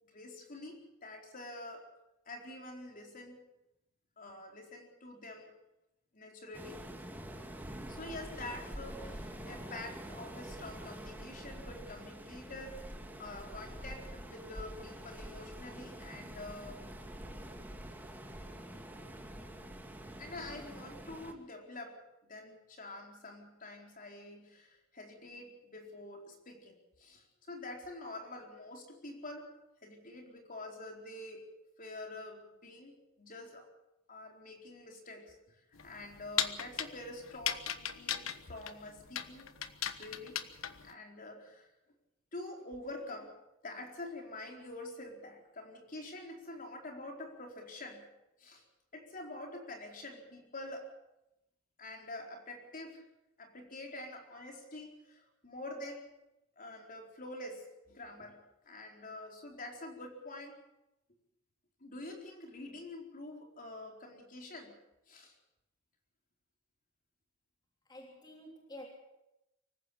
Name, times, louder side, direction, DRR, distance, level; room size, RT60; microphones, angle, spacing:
voice 1, 0.1-1.8 2.3-3.4 4.2-5.5 6.1-6.8 7.9-12.9 13.2-16.8 20.2-22.0 22.3-29.5 29.8-31.5 31.8-33.7 34.1-35.6 35.8-39.5 39.9-40.4 40.8-41.7 42.3-43.4 43.6-48.0 48.4-48.6 48.9-50.9 51.8-53.0 53.4-56.1 56.6-60.6 61.8-64.7 65.1-65.4, left 2 dB, 40° left, 2 dB, 4.4 m, -46 dB
Waves surf, 6.5-21.3, right 1 dB, 10° right, 2.1 m, -46 dB
sound 1, 35.8-40.9, left 9 dB, 75° left, 1.3 m, -37 dB
voice 2, 67.8-68.9, left 1 dB, 20° left, -1 dB, 3.3 m, -49 dB
25.0 x 15.0 x 7.3 m, 0.91 s
head